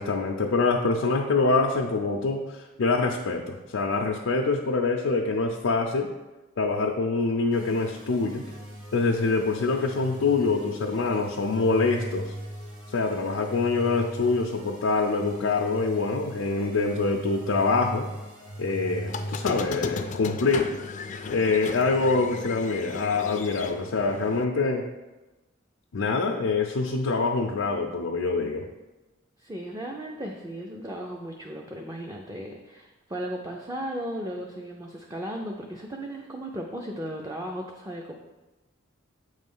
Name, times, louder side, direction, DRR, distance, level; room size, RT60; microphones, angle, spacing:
voice 1, 0.0-6.1 6.6-8.4 8.9-12.3 12.9-18.1 18.6-20.7 21.3-24.9 25.9-28.7, left 3 dB, 90° left, 0 dB, 0.5 m, -25 dB
sound 1, 7.5-19.4, right 1 dB, 80° right, 2.0 m, -39 dB
Squeak, 19.1-24.4, left 4 dB, 40° left, 0.4 m, -35 dB
voice 2, 29.4-38.1, equal, 15° right, 1 dB, 0.5 m, -36 dB
7.5 x 3.2 x 5.4 m, 1.1 s
head